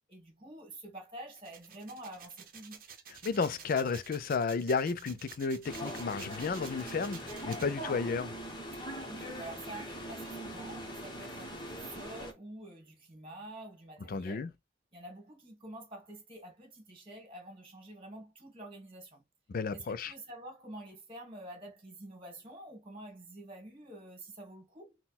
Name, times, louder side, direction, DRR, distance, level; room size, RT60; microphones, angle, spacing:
voice 1, 0.1-2.8 9.1-14.5 14.9-19.2 19.7-25.0, right 1 dB, 30° right, 1.9 m, -48 dB
sound 1, 1.4-7.7, right 7 dB, 50° right, 0.8 m, -50 dB
voice 2, 3.2-8.3 14.1-14.5 19.5-20.1, left 4 dB, 50° left, 0.4 m, -32 dB
sound 2, 5.6-12.3, equal, 25° left, 1.0 m, -41 dB
4.0 x 2.2 x 4.1 m
head